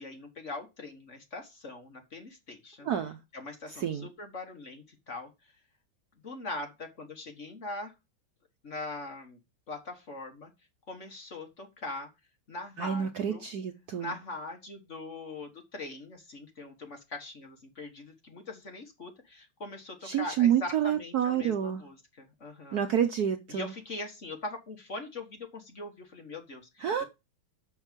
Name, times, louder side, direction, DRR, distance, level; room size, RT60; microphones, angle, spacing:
voice 1, 0.0-2.9 3.3-5.3 6.2-7.9 8.6-9.4 9.7-10.5 10.9-12.1 12.5-13.4 14.0-22.8 23.5-27.0, left 2 dB, 40° left, 1.5 m, -41 dB
voice 2, 2.8-3.2 3.8-4.1 12.8-14.2 20.0-21.8 22.7-23.7 26.8-27.0, right 9 dB, 65° right, 1.0 m, -28 dB
6.4 x 6.3 x 5.1 m
omnidirectional pair, 2.3 m